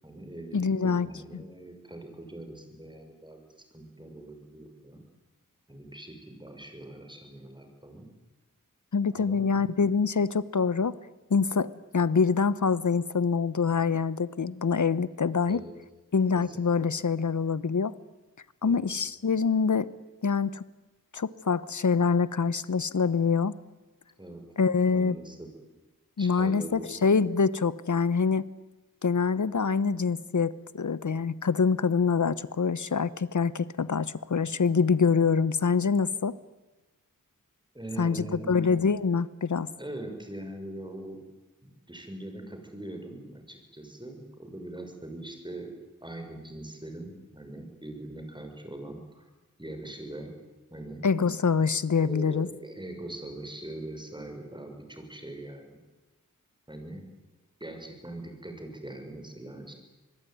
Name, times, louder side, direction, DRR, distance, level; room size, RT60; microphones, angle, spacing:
voice 1, 0.0-3.5 3.7-5.0 5.7-8.1 9.1-9.5 15.5-15.7 16.4-16.6 18.6-18.8 24.2-24.4 24.9-25.5 26.2-26.9 37.7-38.8 39.8-41.2 41.6-49.2 49.6-50.3 50.7-51.1 52.0-55.8 56.7-57.1 57.6-59.7, right 1 dB, 15° right, 5 dB, 6.5 m, -42 dB
voice 2, 0.5-1.1 1.3-1.4 8.9-11.0 11.3-15.6 16.1-17.9 18.6-19.9 20.2-20.6 21.1-23.5 24.6-25.2 26.2-28.5 29.0-36.3 38.0-39.7 51.0-52.5, left 5 dB, 60° left, 17 dB, 1.1 m, -25 dB
26.0 x 22.0 x 9.5 m, 1.1 s
wide cardioid pair, 80°, 34 cm